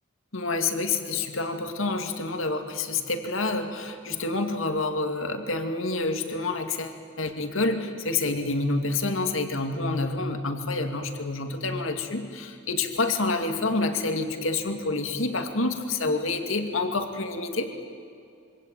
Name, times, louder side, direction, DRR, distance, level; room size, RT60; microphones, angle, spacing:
voice 1, 0.3-17.7, left 3 dB, 70° left, 6 dB, 2.5 m, -28 dB
26.0 x 24.5 x 9.1 m, 2.4 s
head